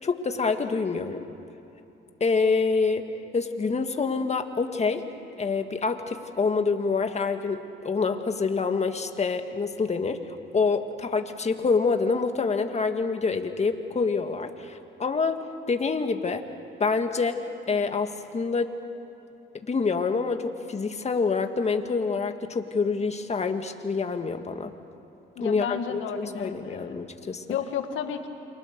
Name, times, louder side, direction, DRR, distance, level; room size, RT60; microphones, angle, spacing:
voice 1, 0.0-1.2 2.2-3.1 3.3-5.0 5.4-10.2 10.5-15.4 15.7-16.4 16.8-17.4 17.7-18.7 19.6-24.7 25.4-27.4, left 4 dB, 35° left, 6 dB, 1.8 m, -26 dB
voice 2, 25.4-26.9 27.5-28.3, left 8 dB, 80° left, 6 dB, 2.0 m, -32 dB
28.5 x 25.0 x 6.7 m, 2.9 s
cardioid pair, 90°, 20 cm